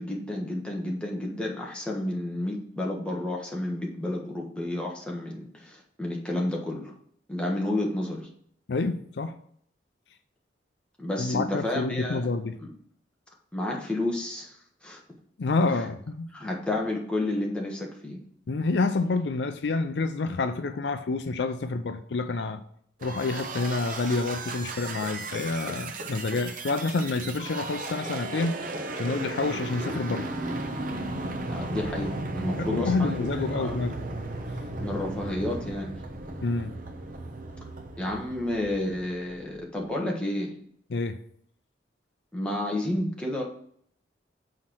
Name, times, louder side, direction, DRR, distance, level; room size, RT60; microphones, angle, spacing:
voice 1, 0.0-6.9 7.3-8.3 11.0-12.3 12.6-12.7 13.5-15.0 16.3-18.2 31.4-33.9 34.8-36.0 38.0-40.5 42.3-43.4, left 1 dB, 5° left, -2 dB, 1.3 m, -31 dB
voice 2, 8.7-9.4 11.2-12.6 15.4-16.3 18.5-22.6 23.0-28.6 29.0-30.3 32.6-34.0 36.4-36.7 40.9-41.2, left 3 dB, 70° left, 9 dB, 0.5 m, -28 dB
sound 1, 23.0-39.6, right 2 dB, 50° right, 0.8 m, -35 dB
sound 2, 25.0-26.4 28.0-29.6, right 1 dB, 85° right, 1.6 m, -40 dB
5.7 x 4.3 x 6.2 m, 0.62 s
head